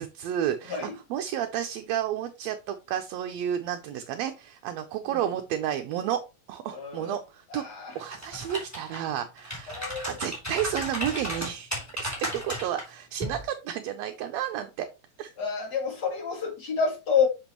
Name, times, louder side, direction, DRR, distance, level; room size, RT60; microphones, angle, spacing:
voice 1, 0.0-6.2 6.5-7.6 8.0-11.7 12.0-14.9 15.2-15.3, right 10 dB, 75° right, 1.8 m, -31 dB
voice 2, 6.7-7.1 7.5-7.9 9.7-10.1 15.4-17.3, left 6 dB, 40° left, 2.1 m, -28 dB
sound 1, 8.0-9.0 9.4-12.8 13.2-13.4, equal, 5° left, 2.6 m, -34 dB
7.1 x 5.9 x 3.0 m
omnidirectional pair, 3.3 m